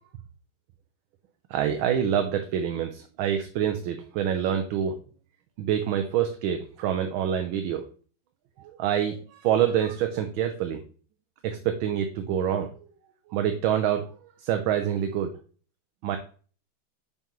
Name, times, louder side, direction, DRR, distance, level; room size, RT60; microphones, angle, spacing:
voice 1, 1.5-5.0 5.6-7.8 8.6-10.8 11.4-12.9 13.3-14.1 14.4-15.3 16.0-16.2, right 9 dB, 80° right, 6 dB, 1.4 m, -26 dB
6.9 x 5.4 x 3.0 m, 0.41 s
omnidirectional pair, 2.2 m